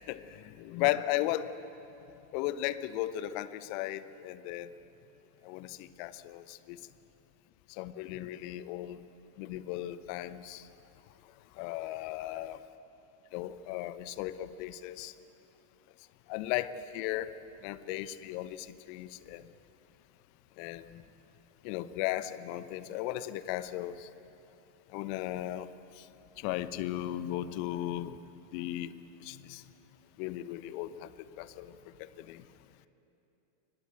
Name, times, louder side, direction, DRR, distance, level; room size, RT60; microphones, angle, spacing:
voice 1, 0.1-1.5 2.3-4.7 5.4-6.8 7.7-9.0 9.4-10.7 11.6-12.6 13.3-15.1 16.3-17.3 17.6-19.4 20.6-21.0 21.6-24.1 24.9-25.7 26.0-26.1 26.4-28.2 28.5-28.9 29.2-29.6 30.2-32.4, left 14 dB, 45° left, 14 dB, 0.9 m, -36 dB
23.0 x 18.0 x 9.1 m, 2.9 s
figure-of-eight pair, 90°, 0 cm